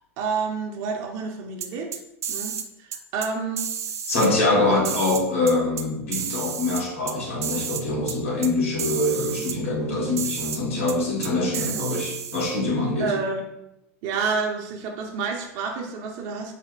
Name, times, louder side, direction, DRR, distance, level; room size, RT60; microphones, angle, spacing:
voice 1, 0.2-2.0 2.3-3.7 4.5-4.6 11.4-11.9 13.0-13.5 14.0-16.5, right 5 dB, 55° right, 2 dB, 0.7 m, -29 dB
sound 1, 1.6-2.7 2.9-3.3 3.6-4.3 4.8-5.8 6.1-7.1 7.4-8.2 8.4-8.5 8.8-9.6 10.2-10.6 10.9-11.0 11.2-12.5, right 8 dB, 90° right, 0.4 m, -31 dB
voice 2, 4.1-13.1, left 2 dB, 75° left, -2 dB, 1.3 m, -24 dB
4.1 x 2.1 x 4.6 m, 0.84 s
hypercardioid pair, 100°, 8 cm